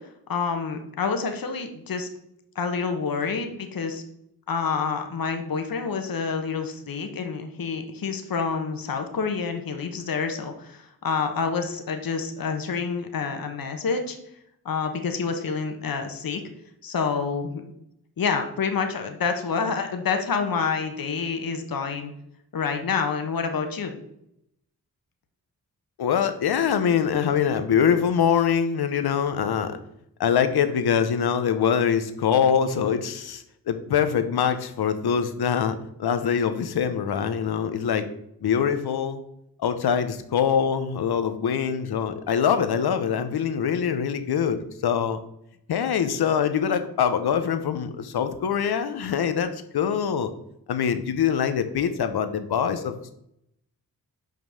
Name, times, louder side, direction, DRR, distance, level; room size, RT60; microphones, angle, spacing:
voice 1, 0.3-2.1 2.5-4.0 4.5-14.2 14.6-16.4 16.8-17.6 18.2-22.1 22.5-24.0, left 5 dB, 65° left, 5 dB, 1.2 m, -28 dB
voice 2, 26.0-29.8 30.2-38.1 38.4-39.2 39.6-45.2 45.7-50.3 50.7-53.1, left 7 dB, 90° left, 9 dB, 0.9 m, -24 dB
5.8 x 5.4 x 6.4 m, 0.77 s
cardioid pair, 65°, 37 cm